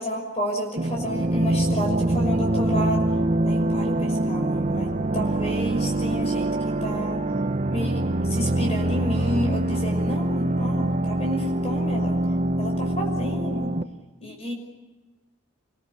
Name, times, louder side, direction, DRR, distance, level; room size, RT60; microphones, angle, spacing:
voice 1, 0.0-3.1 3.5-7.2 7.7-12.1 12.6-13.8 14.2-14.5, equal, 30° left, 2 dB, 5.8 m, -31 dB
sound 1, 0.8-13.8, right 1 dB, 35° right, 0.8 m, -24 dB
27.0 x 21.5 x 8.4 m, 1.2 s
head